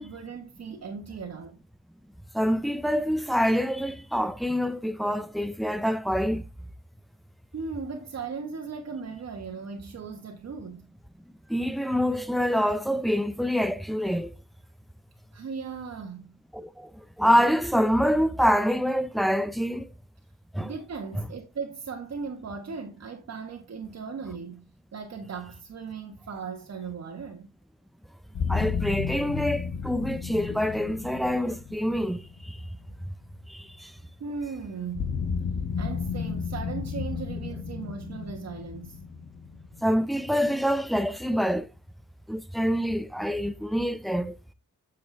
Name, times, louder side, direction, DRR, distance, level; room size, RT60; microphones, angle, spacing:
voice 1, 0.0-1.6 7.5-10.8 15.3-16.3 20.6-24.6 24.9-27.5 34.0-35.2 35.8-39.0, right 5 dB, 50° right, 1.3 m, -37 dB
voice 2, 2.3-6.4 11.5-14.3 16.5-16.9 17.2-19.9 20.5-20.7 28.5-32.6 33.5-33.9 39.8-41.7 42.3-44.5, equal, ahead, 0.4 m, -26 dB
sound 1, 28.3-33.3 34.9-40.6, left 6 dB, 50° left, 1.0 m, -33 dB
8.3 x 6.6 x 3.3 m
wide cardioid pair, 160°, 32 cm